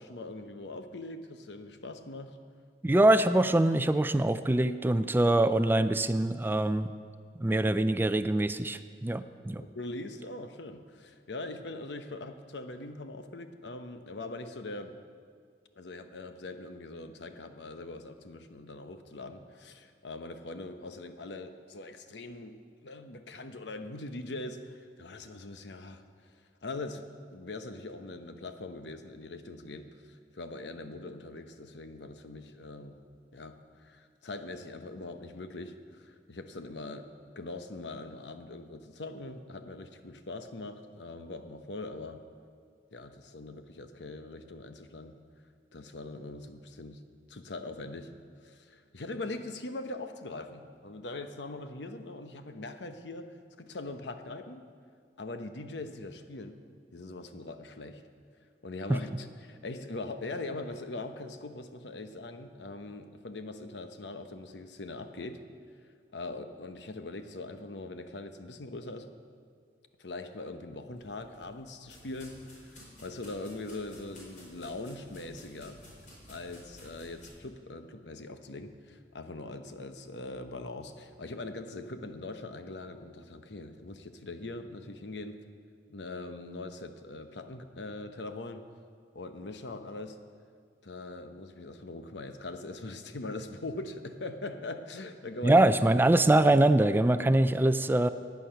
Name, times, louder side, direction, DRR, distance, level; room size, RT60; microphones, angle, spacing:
voice 1, 0.0-2.4 9.7-14.9 15.8-26.0 26.6-27.0 27.3-33.0 33.3-37.1 37.4-42.2 42.9-45.1 45.7-47.0 47.3-48.1 48.4-53.3 53.6-54.7 55.2-56.6 56.9-58.0 58.6-65.4 66.1-69.1 70.0-75.8 76.3-85.4 85.9-88.6 89.1-90.2 90.8-95.6, left 2 dB, 85° left, 8 dB, 0.9 m, -42 dB
voice 2, 2.8-6.9 7.4-9.6 58.9-59.0 95.4-98.1, right 1 dB, 10° right, 12 dB, 0.3 m, -24 dB
sound 1, 70.9-77.3, equal, 50° left, 4.5 m, -53 dB
15.5 x 9.5 x 5.8 m, 2.1 s
head